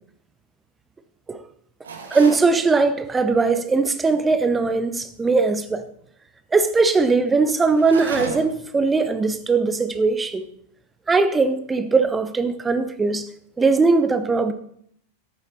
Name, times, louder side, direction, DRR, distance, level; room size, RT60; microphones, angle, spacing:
sound 1, 1.8-2.5 7.7-8.7, right 5 dB, 65° right, 1.7 m, -33 dB
voice 1, 2.1-5.8 6.5-10.5 11.1-13.3 13.6-14.5, right 4 dB, 15° right, 0.9 m, -20 dB
13.5 x 7.5 x 4.3 m
figure-of-eight pair, 90°, 0 cm